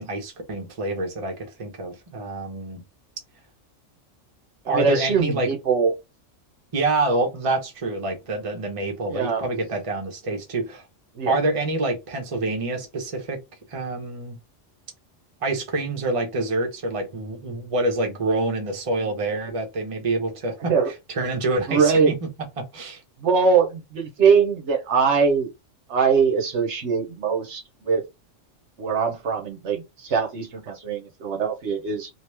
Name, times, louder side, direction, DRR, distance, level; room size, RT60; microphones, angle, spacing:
voice 1, 0.0-2.8 4.7-5.5 6.7-10.8 11.3-13.4 13.7-14.4 15.4-20.7 21.1-22.1 22.6-23.0, right 2 dB, 30° right, 0.9 m, -27 dB
voice 2, 4.6-5.9 9.1-9.4 11.1-11.4 20.7-20.9 21.7-22.1 23.2-25.5 25.9-28.0 28.8-32.1, right 5 dB, 65° right, 1.1 m, -22 dB
3.0 x 2.7 x 3.3 m
omnidirectional pair, 1.3 m